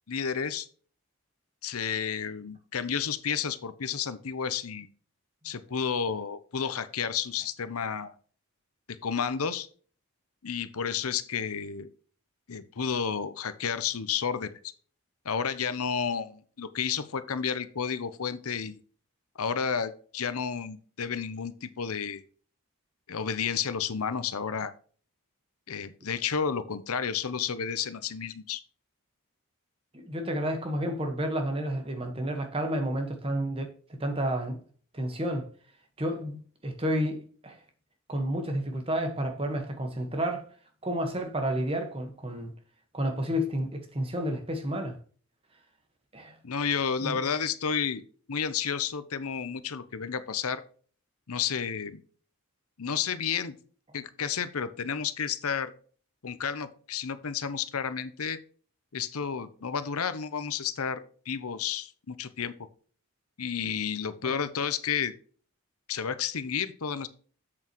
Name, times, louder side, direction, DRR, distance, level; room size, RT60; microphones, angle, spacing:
voice 1, 0.1-0.7 1.6-4.9 5.4-8.1 8.9-9.7 10.4-11.9 12.5-14.7 15.2-18.8 19.4-22.2 23.1-24.7 25.7-28.6 46.4-48.0 48.3-50.6 51.3-52.0 52.8-53.6 53.9-55.7 56.2-58.4 58.9-61.0 61.3-62.7 63.4-65.1 65.9-67.1, left 7 dB, 85° left, 0.8 m, -31 dB
voice 2, 29.9-33.7 34.0-34.6 34.9-35.5 36.0-37.6 38.1-40.4 40.8-42.5 42.9-45.0 46.1-46.4 47.0-47.2, equal, 25° right, 1.4 m, -30 dB
7.9 x 7.5 x 3.1 m
head